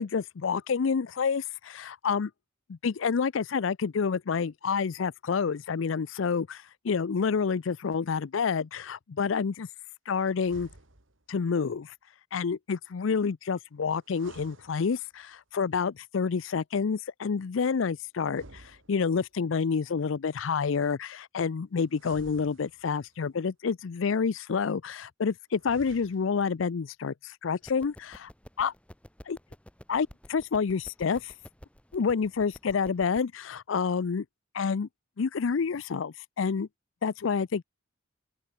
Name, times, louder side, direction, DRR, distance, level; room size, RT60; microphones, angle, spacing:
voice 1, 0.0-2.3 2.7-9.7 10.1-10.7 11.3-11.9 12.3-28.3 28.6-28.7 29.3-29.4 29.9-31.3 31.9-34.2 34.5-34.9 35.2-36.7 37.0-37.6, left 5 dB, 75° left, 0.5 m, -28 dB
sound 1, 10.3-11.3 14.0-15.4 18.2-19.4 21.9-23.2 25.5-26.5, right 2 dB, 75° right, 3.1 m, -52 dB
sound 2, 27.6-33.2, equal, 5° left, 1.6 m, -52 dB
open air
head